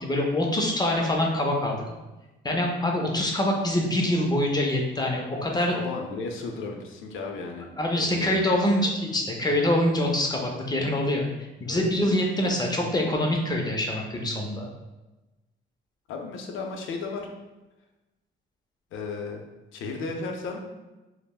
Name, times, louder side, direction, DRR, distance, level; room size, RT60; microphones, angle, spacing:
voice 1, 0.0-1.8 2.4-5.8 7.8-11.3 11.6-14.7, left 1 dB, 20° left, 0 dB, 0.4 m, -25 dB
voice 2, 5.7-7.7 7.9-8.3 8.8-8.9 11.6-11.9 16.1-17.3 18.9-19.4 19.7-20.6, left 4 dB, 80° left, 2 dB, 0.5 m, -34 dB
3.3 x 2.0 x 2.3 m, 1.1 s
cardioid pair, 90°, 20 cm